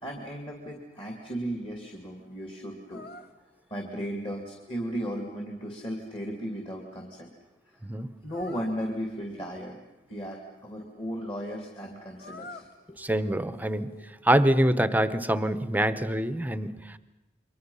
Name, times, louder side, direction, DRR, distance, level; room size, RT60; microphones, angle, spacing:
voice 1, 0.0-3.0 3.7-7.3 8.2-9.8 10.1-13.0, equal, 30° left, 2 dB, 2.5 m, -35 dB
sound 1, 2.9-3.3 8.3-8.7 12.2-12.7 13.2-14.1 14.5-15.3, left 3 dB, 55° left, 1.4 m, -47 dB
voice 2, 13.0-13.9 14.2-17.0, right 1 dB, 10° right, 13 dB, 0.9 m, -25 dB
28.5 x 23.5 x 5.6 m, 1.0 s
head